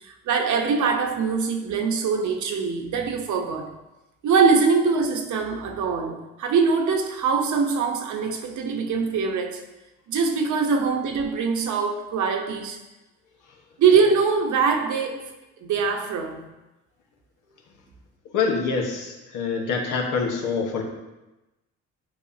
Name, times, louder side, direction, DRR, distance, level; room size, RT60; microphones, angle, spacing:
voice 1, 0.0-3.7 4.2-9.6 10.1-12.8 13.8-15.3 15.6-16.5, right 5 dB, 75° right, 1.1 m, -23 dB
voice 2, 18.3-20.8, left 5 dB, 90° left, 1.4 m, -25 dB
9.5 x 5.4 x 2.8 m
cardioid pair, 90°, 30 cm